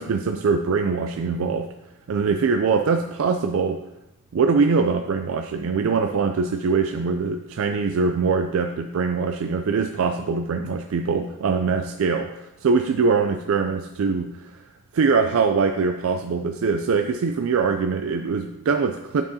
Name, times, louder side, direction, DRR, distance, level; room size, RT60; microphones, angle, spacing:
voice 1, 0.0-1.7 2.1-3.8 4.3-12.3 12.6-14.6 14.9-19.2, right 5 dB, 75° right, 6 dB, 0.4 m, -23 dB
10.5 x 4.5 x 2.8 m, 0.94 s
head